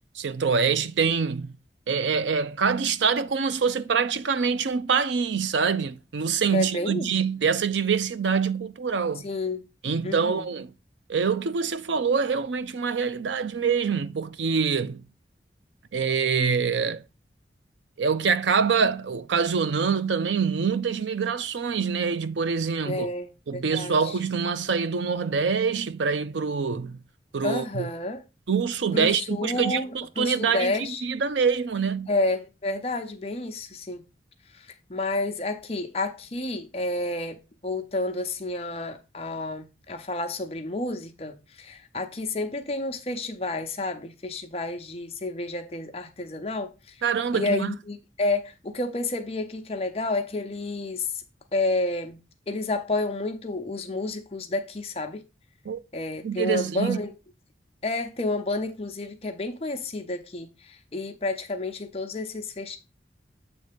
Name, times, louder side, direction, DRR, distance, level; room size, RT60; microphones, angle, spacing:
voice 1, 0.1-1.5 1.9-9.3 9.8-10.7 11.1-15.0 15.9-17.0 18.0-23.1 23.5-27.0 27.3-27.9 28.5-30.7 31.0-32.1 47.0-47.7 55.7-55.8 56.2-57.0, right 5 dB, 90° right, 0.5 m, -25 dB
voice 2, 6.5-7.1 9.2-9.7 10.0-10.5 22.8-24.2 27.4-28.2 28.9-31.0 32.1-34.0 34.5-47.0 47.3-51.2 51.5-52.2 52.5-55.2 55.9-57.1 57.8-62.8, left 2 dB, 35° left, 0.7 m, -30 dB
7.8 x 3.2 x 5.1 m
head